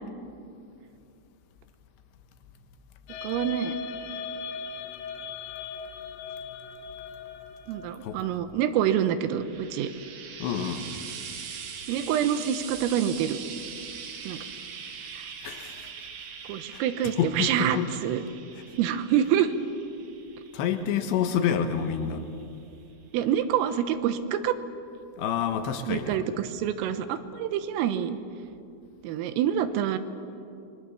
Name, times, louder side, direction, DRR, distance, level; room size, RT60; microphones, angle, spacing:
sound 1, 3.1-8.2, left 5 dB, 90° left, 3.9 m, -38 dB
voice 1, 3.2-3.8 7.7-9.9 11.9-13.4 14.3-14.4 15.2-15.3 16.5-18.2 18.8-19.5 23.1-24.6 25.9-28.2 29.0-30.0, right 10 dB, 85° right, 10 dB, 3.7 m, -26 dB
Frying (food), 9.1-22.5 23.5-23.6, right 6 dB, 60° right, 3.4 m, -42 dB
voice 2, 10.4-10.9 15.4-15.9 16.7-16.8 17.2-17.9 20.5-22.3 25.2-26.3, left 8 dB, 70° left, 7 dB, 3.2 m, -28 dB
28.5 x 23.0 x 7.1 m, 2.6 s
omnidirectional pair, 5.9 m